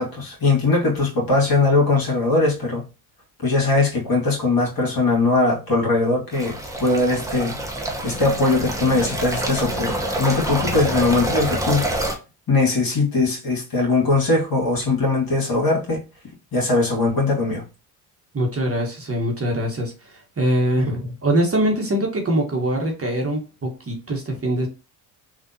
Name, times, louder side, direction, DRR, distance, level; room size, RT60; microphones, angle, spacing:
voice 1, 0.0-2.8 3.4-7.6 8.0-11.8 12.5-16.0 16.5-17.6, left 3 dB, 45° left, 1.9 m, -20 dB
sound 1, 6.3-12.2, right 1 dB, 5° right, 0.9 m, -26 dB
voice 2, 18.3-24.7, right 1 dB, 30° right, 1.1 m, -23 dB
3.4 x 2.5 x 2.7 m
supercardioid pair, 60°, 50 cm